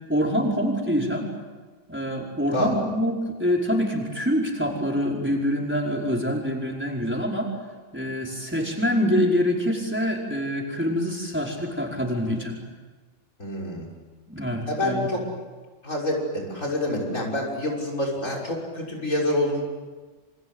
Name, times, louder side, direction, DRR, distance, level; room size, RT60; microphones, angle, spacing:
voice 1, 0.1-1.3 1.9-7.5 7.9-12.5 14.3-15.1, equal, 10° right, -1 dB, 4.9 m, -25 dB
voice 2, 13.4-13.9 14.7-15.2 15.8-19.6, left 1 dB, 85° left, 1 dB, 6.7 m, -27 dB
28.5 x 25.5 x 8.1 m, 1.4 s
omnidirectional pair, 1.3 m